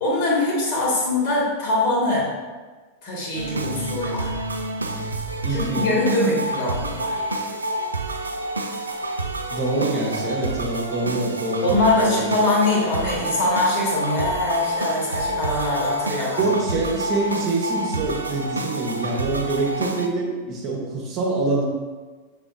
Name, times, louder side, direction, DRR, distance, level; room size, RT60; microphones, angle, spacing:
voice 1, 0.0-2.3 3.0-4.3 5.5-7.2 11.6-16.4, left 2 dB, 50° left, -4 dB, 1.4 m, -22 dB
sound 1, 3.4-20.1, right 1 dB, 80° right, 0.3 m, -28 dB
voice 2, 5.4-5.9 9.5-12.3 16.4-21.6, right 2 dB, 35° right, -2 dB, 0.9 m, -25 dB
6.1 x 3.5 x 2.4 m, 1.4 s
figure-of-eight pair, 90°, 0 cm